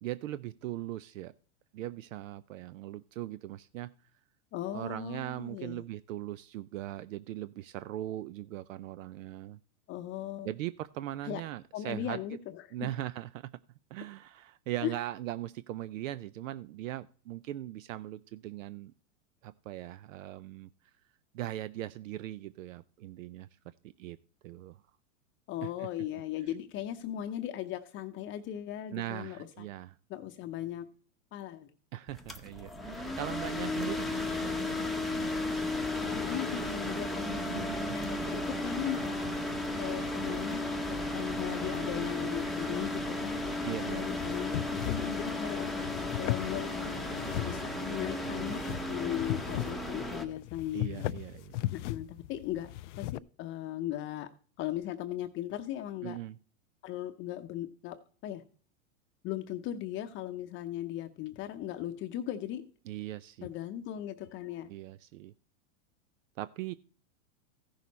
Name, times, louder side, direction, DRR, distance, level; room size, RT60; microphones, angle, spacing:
voice 1, 0.0-1.3 1.7-3.9 4.7-9.6 10.4-12.2 12.7-13.5 13.9-18.9 19.4-20.7 21.3-23.5 23.8-24.2 24.4-24.8 25.6-25.9 26.1-26.2 28.9-30.0 31.9-35.3 37.4-38.0 43.6-44.0 50.7-51.6 56.0-56.4 62.9-63.5 64.7-65.3 66.4-66.7, right 14 dB, 75° right, 16 dB, 0.6 m, -40 dB
voice 2, 4.5-5.8 9.9-10.5 11.2-11.4 11.7-12.9 14.8-14.9 25.5-29.7 30.1-30.9 31.3-31.7 36.2-39.2 39.8-43.4 43.9-45.7 46.2-46.7 47.4-51.1 51.7-52.7 53.0-54.3 54.6-56.2 56.8-58.0 58.2-58.4 59.2-62.7 63.4-64.7, left 12 dB, 30° left, 7 dB, 0.7 m, -38 dB
sound 1, 32.1-50.3, left 2 dB, ahead, 0.8 m, -34 dB
sound 2, 44.2-53.2, left 15 dB, 65° left, 0.5 m, -38 dB
15.0 x 6.5 x 4.1 m, 0.42 s
supercardioid pair, 135°, 39 cm